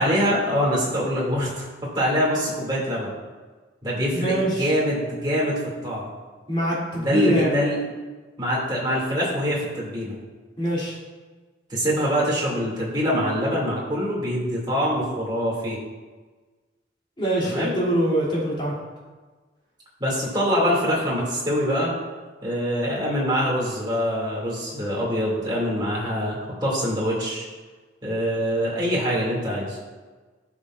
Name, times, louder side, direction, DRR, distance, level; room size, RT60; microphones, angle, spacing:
voice 1, 0.0-1.7 1.9-3.1 3.8-6.1 7.0-7.8 8.4-10.2 11.7-15.8 17.4-17.7 20.0-21.9 22.4-27.5 28.0-29.8, equal, 25° right, -5 dB, 2.5 m, -24 dB
voice 2, 4.1-4.7 6.5-7.6 10.6-10.9 17.2-18.7, right 1 dB, 30° left, -6 dB, 2.9 m, -24 dB
15.0 x 6.2 x 2.5 m, 1.3 s
head